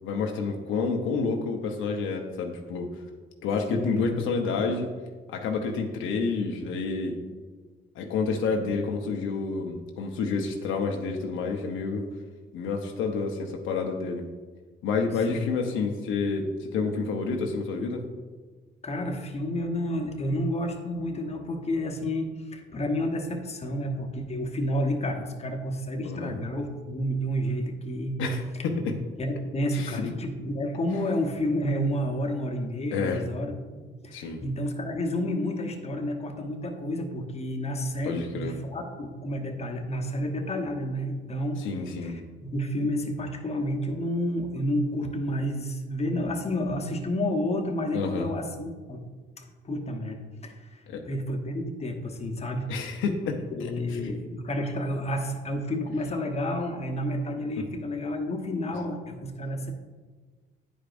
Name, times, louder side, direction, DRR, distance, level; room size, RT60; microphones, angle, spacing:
voice 1, 0.0-2.9 3.4-4.9 5.3-7.2 8.0-12.1 12.5-14.3 14.8-18.0 26.0-26.3 28.2-28.9 29.7-30.0 32.9-33.2 34.1-34.4 38.0-38.5 41.6-42.2 47.9-48.3 50.9-51.0 52.7-54.1, left 4 dB, 90° left, 2 dB, 0.8 m, -29 dB
voice 2, 3.7-4.1 15.3-15.5 18.8-28.1 29.2-41.6 42.0-49.1 49.4-52.7 53.5-59.7, left 1 dB, 30° left, 2 dB, 1.0 m, -30 dB
10.0 x 4.9 x 2.6 m, 1.4 s
cardioid pair, 90°, 20 cm